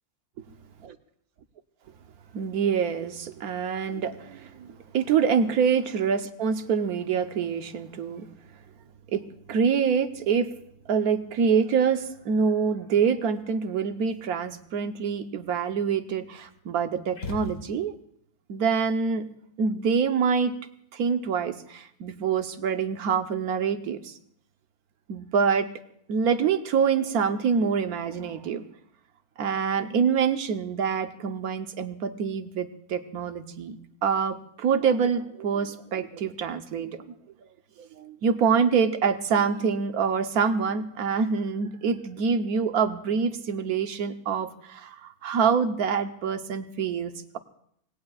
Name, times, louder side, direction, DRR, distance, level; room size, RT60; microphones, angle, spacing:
voice 1, 2.3-8.3 9.1-10.5 10.9-17.9 18.5-19.3 19.6-20.5 20.9-24.1 25.1-25.7 26.1-28.6 29.4-33.8 34.0-37.1 37.8-47.4, right 6 dB, 90° right, 8 dB, 1.4 m, -26 dB
sound 1, 17.1-18.2, left 3 dB, 60° left, 2.2 m, -38 dB
26.0 x 19.0 x 2.4 m, 0.69 s
omnidirectional pair, 1.5 m